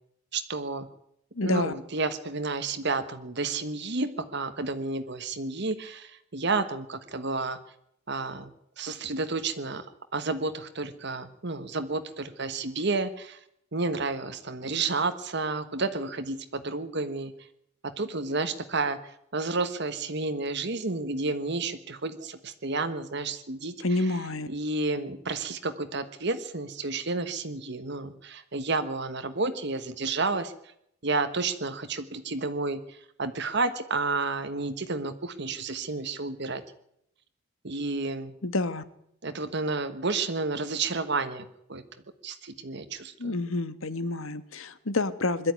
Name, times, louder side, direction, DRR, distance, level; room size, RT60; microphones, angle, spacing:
voice 1, 0.3-0.9 1.4-7.6 8.1-9.8 10.1-13.4 13.7-17.3 17.8-24.0 24.5-30.5 31.0-36.6 37.6-38.3 39.2-41.8 42.2-43.4, right 3 dB, 55° right, 9 dB, 1.3 m, -31 dB
voice 2, 1.3-1.7 23.8-24.5 38.4-38.8 43.2-45.5, left 2 dB, 75° left, 13 dB, 1.4 m, -28 dB
22.0 x 13.0 x 9.6 m, 0.74 s
head